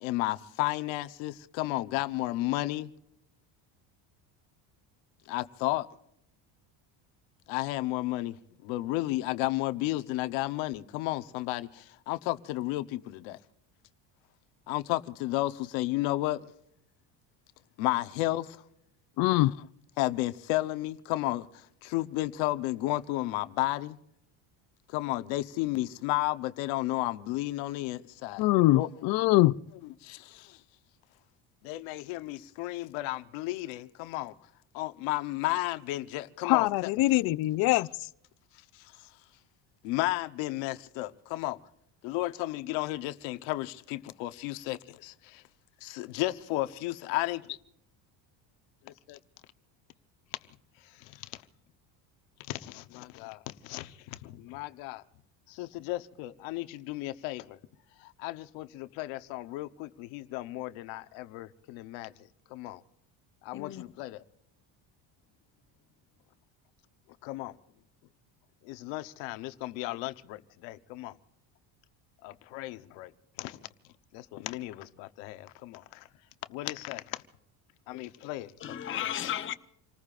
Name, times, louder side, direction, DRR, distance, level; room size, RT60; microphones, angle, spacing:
voice 1, 0.0-2.9 5.3-5.9 7.5-8.3 8.6-13.4 14.7-16.4 17.8-18.5 20.0-21.4 21.8-24.0 24.9-28.4 28.7-28.9 30.0-30.5 31.6-34.3 34.7-36.7 39.8-41.6 42.0-45.4 45.8-47.6 49.1-49.2 52.5-53.9 54.2-55.0 55.5-57.6 58.2-62.1 62.5-62.8 63.4-64.2 67.2-67.5 68.7-71.1 72.2-73.1 73.4-73.6 74.1-76.0 76.5-77.0 77.9-78.5, left 17 dB, 90° left, 1.0 m, -33 dB
voice 2, 19.2-19.5 28.4-29.6 36.4-37.9, left 18 dB, 55° left, 0.5 m, -23 dB
voice 3, 63.5-63.8 77.9-78.3 78.6-79.5, left 10 dB, 25° left, 0.8 m, -35 dB
28.5 x 19.5 x 2.5 m
cardioid pair, 140°, 45 cm